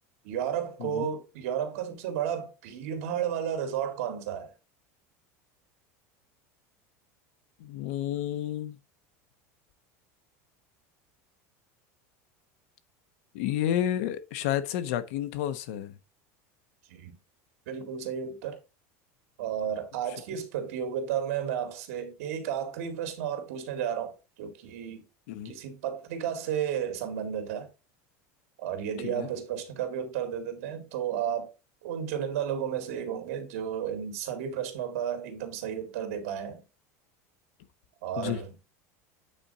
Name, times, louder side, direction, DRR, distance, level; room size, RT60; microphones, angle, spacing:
voice 1, 0.2-4.5 16.9-17.2 17.7-18.6 19.4-25.0 25.4-27.7 28.6-31.5 31.8-36.6 38.0-38.5, right 9 dB, 75° right, 2.1 m, -33 dB
voice 2, 7.6-8.8 13.3-15.9 25.3-25.5 29.0-29.3 38.2-38.4, left 11 dB, 70° left, 1.0 m, -30 dB
8.7 x 4.3 x 3.8 m
supercardioid pair, 160°, 8 cm